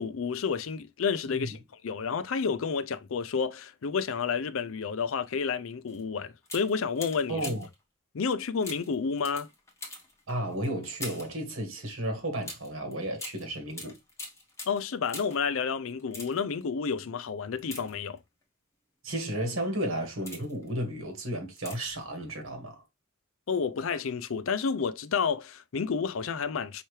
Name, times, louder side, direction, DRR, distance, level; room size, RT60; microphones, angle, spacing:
voice 1, 0.0-7.4 8.1-9.5 14.7-18.2 23.5-26.8, left 5 dB, 65° left, 0.5 m, -30 dB
sound 1, 5.9-6.0 6.4-7.8 8.6-11.4 12.4-15.5 16.0-16.6 17.6-18.4 19.1-19.3 19.9-20.7 21.6-22.0 22.3-22.4, left 2 dB, 15° left, 1.3 m, -44 dB
voice 2, 7.3-7.7 10.3-14.0 19.0-22.8, right 1 dB, 70° right, 1.9 m, -33 dB
5.6 x 3.0 x 3.2 m
head